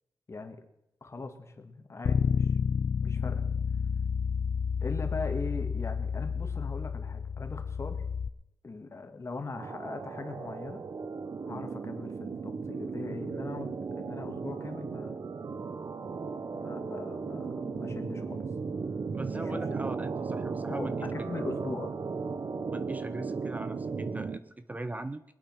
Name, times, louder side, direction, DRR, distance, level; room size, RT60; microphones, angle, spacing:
voice 1, 0.3-0.6 1.0-2.7 3.0-3.4 4.8-8.1 8.6-10.8 11.4-15.1 16.5-18.4 19.3-19.6 20.7-22.0, left 3 dB, 40° left, 6 dB, 2.0 m, -40 dB
Bass guitar, 2.0-8.3, left 6 dB, 70° left, 0.6 m, -30 dB
sound 1, 9.5-24.4, right 5 dB, 55° right, 0.9 m, -36 dB
voice 2, 19.1-21.0 22.7-25.2, right 2 dB, 20° right, 12 dB, 0.6 m, -39 dB
22.5 x 8.7 x 6.0 m, 0.84 s
wide cardioid pair, 110°, 7 cm